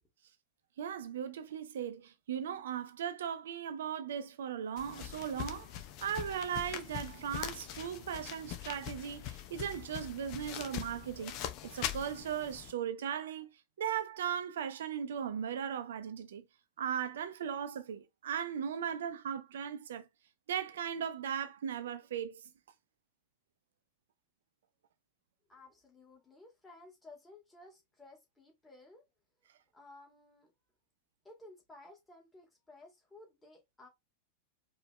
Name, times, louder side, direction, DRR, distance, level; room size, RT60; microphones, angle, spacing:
voice 1, 0.8-5.7 6.0-11.4 11.6-13.5 13.8-16.4 16.8-20.1 20.5-22.4, right 8 dB, 60° right, 0.7 m, -37 dB
sound 1, 4.8-12.7, left 11 dB, 40° left, 0.8 m, -42 dB
voice 2, 25.5-29.0 29.7-30.5 31.2-33.9, left 2 dB, 10° left, 2.3 m, -56 dB
4.7 x 3.3 x 3.2 m
figure-of-eight pair, 90°, 0 cm